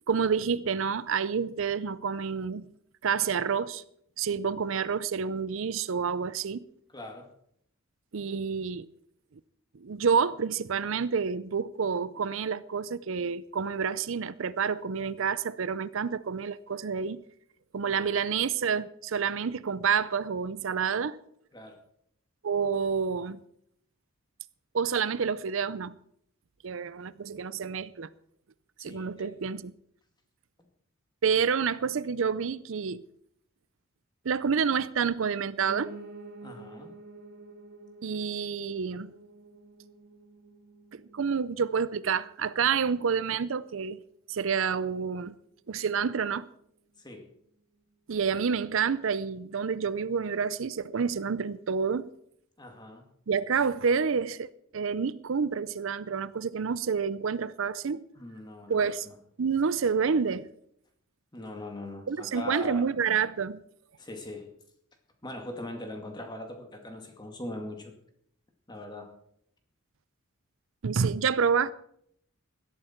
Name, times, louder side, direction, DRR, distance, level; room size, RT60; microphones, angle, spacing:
voice 1, 0.1-2.7 3.0-3.8 4.2-6.7 8.1-8.9 9.7-17.2 17.7-21.2 22.4-23.4 24.7-25.9 26.6-28.1 28.8-29.7 31.2-33.0 34.2-35.9 38.0-39.1 40.9-44.0 44.3-45.3 45.7-46.5 48.1-52.1 53.3-54.5 54.7-58.0 58.7-59.1 59.4-60.5 62.1-63.6 70.8-71.7, right 6 dB, 65° right, 0.5 m, -28 dB
voice 2, 6.9-7.3 17.8-18.1 21.5-21.8 28.8-29.3 36.4-36.9 47.0-47.3 52.6-53.0 58.2-59.2 61.3-62.9 64.0-64.5 65.2-67.9 68.7-69.1, left 1 dB, 20° left, 2.3 m, -41 dB
Piano, 35.7-44.8 45.2-46.3 46.6-46.7 46.9-47.0 47.3-47.4 47.9-48.0, right 2 dB, 45° right, 1.9 m, -50 dB
17.5 x 12.5 x 4.5 m
head